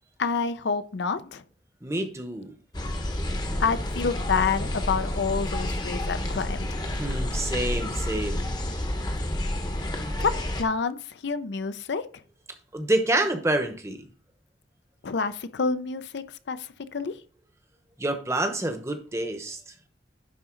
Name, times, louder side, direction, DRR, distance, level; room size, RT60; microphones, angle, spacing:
voice 1, 0.2-1.4 3.6-6.8 10.2-12.0 15.0-17.2, left 5 dB, 70° left, 0.5 m, -28 dB
voice 2, 1.8-2.5 6.9-8.5 12.7-14.0 18.0-19.6, right 1 dB, 15° right, 0.8 m, -27 dB
sound 1, 2.7-10.6, left 1 dB, 20° left, 0.8 m, -29 dB
10.5 x 3.9 x 3.8 m
head